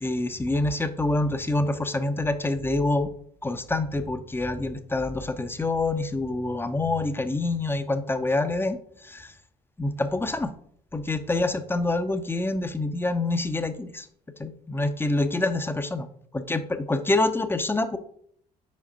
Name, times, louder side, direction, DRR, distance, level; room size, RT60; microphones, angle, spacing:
voice 1, 0.0-3.1 3.4-8.8 9.0-9.3 9.8-10.5 10.9-14.1 14.4-16.0 16.3-18.0, left 2 dB, 10° left, 10 dB, 0.7 m, -26 dB
5.2 x 5.0 x 4.0 m, 0.64 s
hypercardioid pair, 55°, 20 cm